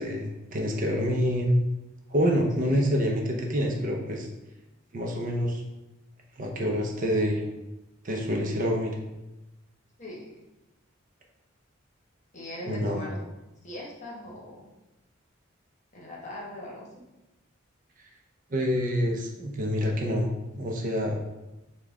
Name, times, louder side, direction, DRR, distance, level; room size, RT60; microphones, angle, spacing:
voice 1, 0.0-1.5 2.1-4.3 4.9-5.6 6.4-7.5 8.0-9.0 12.7-13.1 18.5-21.2, equal, 40° right, 1 dB, 0.5 m, -27 dB
voice 2, 2.6-2.9 10.0-10.3 12.3-13.2 13.6-14.7 15.9-17.0, left 1 dB, 35° left, -3 dB, 0.9 m, -40 dB
5.4 x 2.2 x 3.5 m, 0.98 s
head